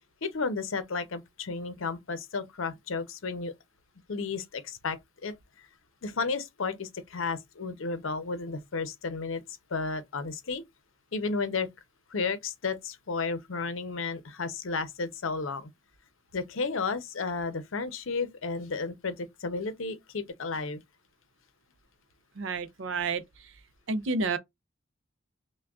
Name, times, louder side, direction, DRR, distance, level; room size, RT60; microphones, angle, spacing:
voice 1, 0.2-3.5 4.1-5.3 6.0-9.4 9.7-10.6 11.1-11.7 12.1-15.7 16.3-20.8, left 4 dB, 75° left, 0.7 m, -33 dB
voice 2, 22.4-23.5 23.9-24.4, right 3 dB, 65° right, 0.5 m, -30 dB
5.9 x 2.2 x 2.3 m
head